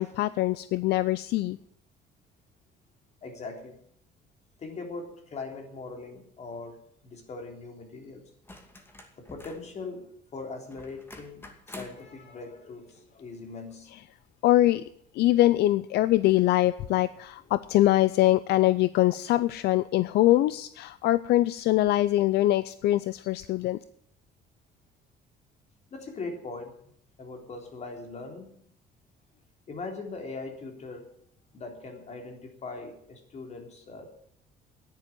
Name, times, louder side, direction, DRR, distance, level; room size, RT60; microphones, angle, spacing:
voice 1, 0.0-1.6 14.4-14.8 15.1-23.8, left 15 dB, 75° left, 16 dB, 0.5 m, -23 dB
voice 2, 3.2-3.8 4.6-8.2 9.2-13.9 23.3-23.5 25.9-26.7 27.2-28.6 29.7-31.1 31.5-34.1, left 3 dB, 40° left, 3 dB, 3.6 m, -40 dB
sound 1, 8.4-9.7 10.7-12.1 13.7-13.8, left 2 dB, 15° left, 2.4 m, -47 dB
10.5 x 9.7 x 9.4 m, 0.67 s
cardioid pair, 110°, 17 cm